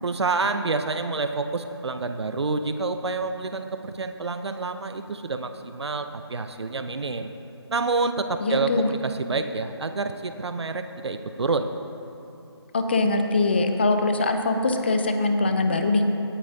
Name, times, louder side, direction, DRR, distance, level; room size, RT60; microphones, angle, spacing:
voice 1, 0.0-7.3 7.7-11.7, right 3 dB, 75° right, 8 dB, 0.6 m, -28 dB
voice 2, 8.4-8.9 12.7-16.0, left 2 dB, 25° left, 6 dB, 0.5 m, -22 dB
18.0 x 8.6 x 2.7 m, 2.8 s
figure-of-eight pair, 165°, 14 cm